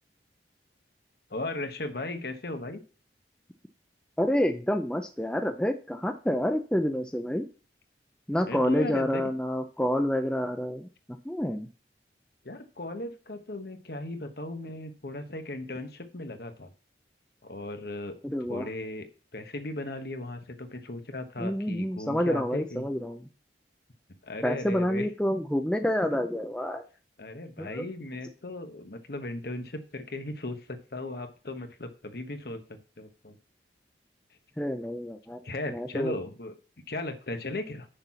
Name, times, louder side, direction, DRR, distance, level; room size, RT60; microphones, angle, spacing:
voice 1, 1.3-2.8 8.4-9.3 12.4-16.7 17.4-18.1 18.5-22.9 24.2-25.1 27.2-33.4 35.4-36.5 36.9-37.9, left 2 dB, 60° left, 7 dB, 1.2 m, -37 dB
voice 2, 4.2-7.5 8.3-10.9 11.3-11.7 18.2-18.7 21.4-23.2 24.4-26.8 27.6-27.8 34.6-35.4 35.7-36.1, equal, 5° left, 5 dB, 0.5 m, -28 dB
6.8 x 6.0 x 5.8 m, 0.36 s
head